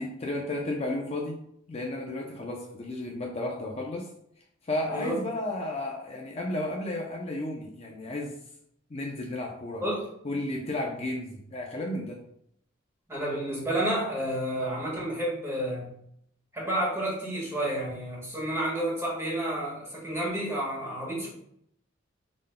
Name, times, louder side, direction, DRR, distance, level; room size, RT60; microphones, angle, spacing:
voice 1, 0.0-1.4 1.7-4.1 4.6-8.4 8.9-9.8 10.2-12.2, left 1 dB, 35° left, -1 dB, 0.6 m, -33 dB
voice 2, 4.9-5.2 9.8-10.0 13.1-15.9 16.5-21.3, right 1 dB, 15° right, -5 dB, 1.6 m, -30 dB
5.0 x 3.8 x 2.2 m, 0.71 s
head